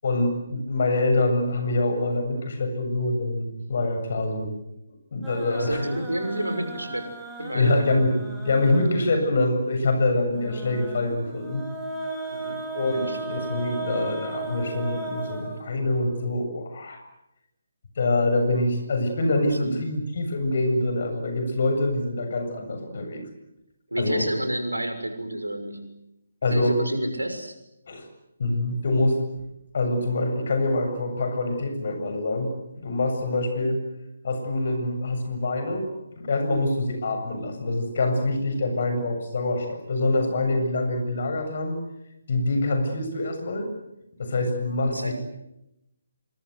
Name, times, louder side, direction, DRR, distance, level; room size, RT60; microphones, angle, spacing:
voice 1, 0.0-4.5 5.1-5.9 7.5-11.7 12.7-17.0 18.0-23.2 24.0-24.3 26.4-26.8 27.9-28.1 28.4-29.2 29.7-33.8 34.2-35.9 36.2-41.8 42.3-43.7 44.2-45.1, left 2 dB, 50° left, 6 dB, 7.6 m, -25 dB
sound 1, 5.2-9.2 10.3-16.1, right 2 dB, 5° right, 6.8 m, -36 dB
voice 2, 5.5-7.1 7.4-7.9 12.3-12.6 12.9-13.3 19.4-19.8 23.9-25.8 26.5-27.5 44.9-45.1, right 1 dB, 85° right, 8 dB, 6.3 m, -30 dB
27.5 x 25.5 x 8.1 m, 0.86 s
figure-of-eight pair, 145°, 0 cm